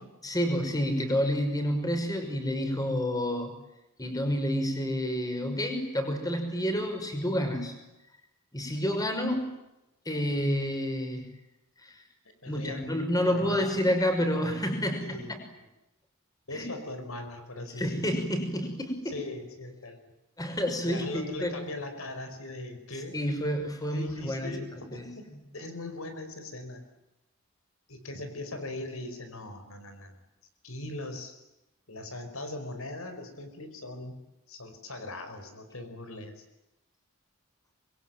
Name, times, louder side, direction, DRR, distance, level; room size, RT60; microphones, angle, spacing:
voice 1, 0.2-3.5 4.0-7.7 8.5-9.5 10.1-11.3 11.8-12.0 12.5-15.4 16.5-16.7 17.8-19.2 20.4-21.6 23.1-24.6 24.9-25.4, equal, 15° left, 5 dB, 5.9 m, -29 dB
voice 2, 12.4-12.8 13.3-13.8 15.0-15.3 16.5-18.0 19.1-20.0 20.8-23.2 23.9-26.8 27.9-30.2 30.6-31.3 31.9-34.1 34.5-36.4, left 2 dB, 75° left, 7 dB, 5.1 m, -40 dB
27.0 x 23.0 x 9.3 m, 0.94 s
head